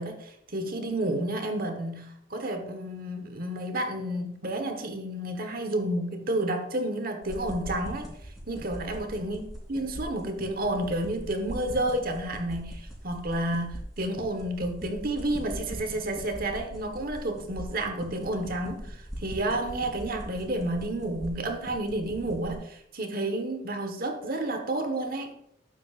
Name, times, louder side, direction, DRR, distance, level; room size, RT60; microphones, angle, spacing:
voice 1, 0.0-8.1 8.5-9.4 9.7-25.3, right 1 dB, 50° right, 6 dB, 1.2 m, -31 dB
sound 1, 7.2-22.6, equal, ahead, 2.9 m, -41 dB
12.0 x 8.6 x 2.5 m, 0.74 s
head